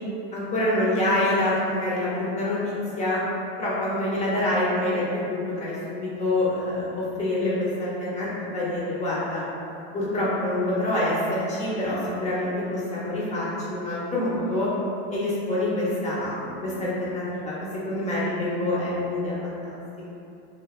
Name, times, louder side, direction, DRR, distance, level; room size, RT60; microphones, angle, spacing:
voice 1, 0.3-3.2 3.6-9.4 9.9-14.7 15.1-19.6, left 1 dB, 20° left, -7 dB, 0.8 m, -26 dB
3.2 x 2.3 x 2.3 m, 2.7 s
supercardioid pair, 115°, 32 cm